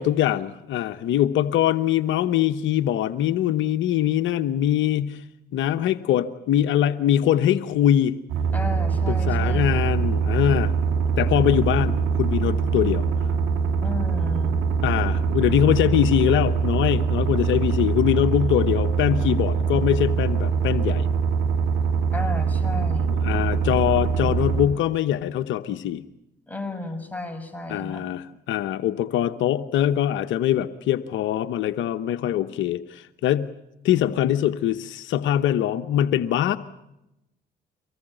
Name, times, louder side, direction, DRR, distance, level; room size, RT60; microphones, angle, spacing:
voice 1, 0.0-5.2 5.5-8.2 9.1-10.7 11.2-13.1 14.8-21.1 23.1-26.0 27.7-33.5 33.8-36.6, left 11 dB, 75° left, 10 dB, 0.9 m, -23 dB
sound 1, 8.3-24.7, right 6 dB, 85° right, 4.3 m, -23 dB
voice 2, 8.5-9.8 13.8-14.6 22.1-23.1 26.5-28.1, left 2 dB, 10° left, 5 dB, 6.8 m, -33 dB
24.5 x 19.0 x 9.0 m, 0.90 s
supercardioid pair, 60°, 20 cm